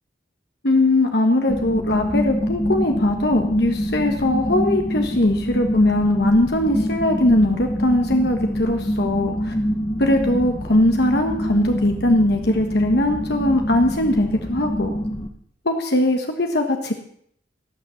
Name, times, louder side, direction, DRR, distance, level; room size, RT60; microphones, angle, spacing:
voice 1, 0.6-9.5 10.0-14.9 15.6-17.0, left 1 dB, 60° left, 3 dB, 1.4 m, -20 dB
sound 1, 1.5-15.3, equal, 25° left, 1.1 m, -25 dB
18.0 x 6.3 x 7.2 m, 0.66 s
head